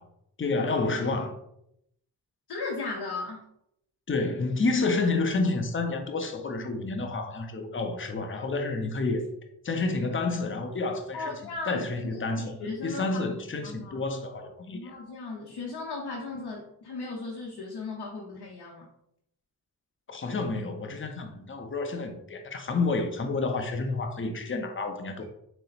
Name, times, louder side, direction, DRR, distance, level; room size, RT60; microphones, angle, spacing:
voice 1, 0.4-1.3 4.1-9.3 9.6-11.3 11.7-12.5 12.8-14.9 20.1-25.2, left 3 dB, 30° left, 0.7 m, -29 dB
voice 2, 2.5-3.5 11.1-13.2 13.6-14.0 14.7-18.9, left 3 dB, 75° left, 0.7 m, -36 dB
3.9 x 2.1 x 4.1 m
cardioid pair, 40°, 40 cm